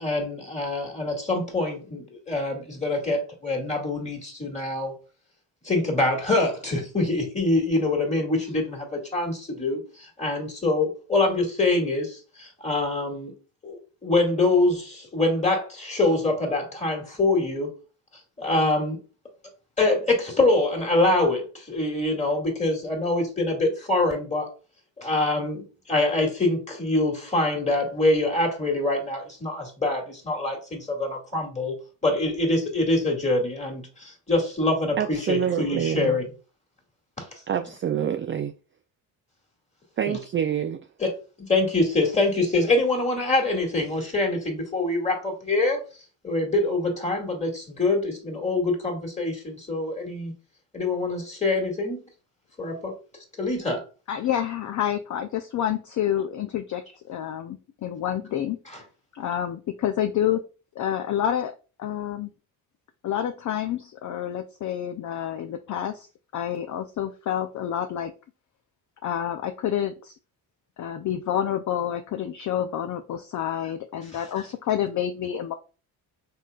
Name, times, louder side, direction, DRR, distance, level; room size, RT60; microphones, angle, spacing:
voice 1, 0.0-5.0 5.6-13.3 13.6-17.7 18.4-19.0 19.8-24.5 25.0-31.8 32.0-36.2 37.2-37.3 40.1-40.2 41.0-41.1 41.4-45.8 46.2-50.3 50.7-52.0 52.6-52.9 53.4-53.8, left 2 dB, 15° left, 2.0 m, -25 dB
voice 2, 35.0-36.2 37.5-38.5 40.0-40.8, right 9 dB, 30° right, 0.3 m, -26 dB
voice 3, 54.1-58.6 59.1-60.4 60.8-61.5 61.8-62.3 63.0-68.1 69.0-70.2 70.8-75.5, left 10 dB, 40° left, 0.5 m, -28 dB
4.4 x 3.1 x 2.3 m
supercardioid pair, 60°, 47 cm